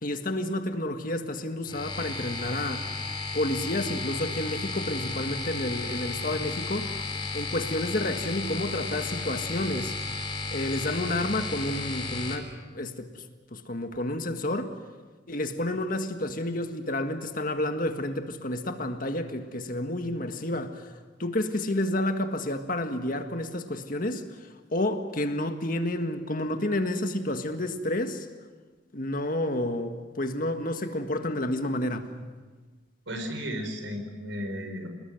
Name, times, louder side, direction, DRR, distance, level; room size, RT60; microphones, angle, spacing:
voice 1, 0.0-2.9 3.3-6.9 7.3-9.9 10.5-13.2 13.5-14.7 15.3-20.9 21.2-24.3 24.7-28.3 28.9-32.1, left 1 dB, 45° left, 1.8 m, -30 dB
sound 1, 1.7-12.3, left 3 dB, 25° left, 3.2 m, -33 dB
voice 2, 33.1-34.9, equal, 85° right, 5.3 m, -34 dB
28.0 x 20.0 x 7.8 m
head